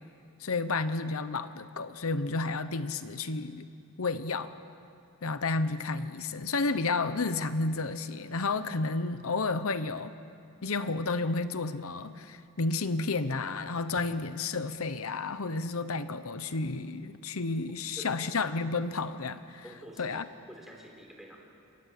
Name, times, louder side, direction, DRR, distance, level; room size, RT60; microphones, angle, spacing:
voice 1, 0.4-3.7 4.0-4.5 5.2-10.1 10.6-19.6 20.0-20.3, left 3 dB, 80° left, 12 dB, 0.9 m, -31 dB
voice 2, 19.6-20.2 20.5-21.4, right 1 dB, ahead, 0 dB, 4.1 m, -48 dB
28.5 x 25.0 x 7.7 m, 2.6 s
head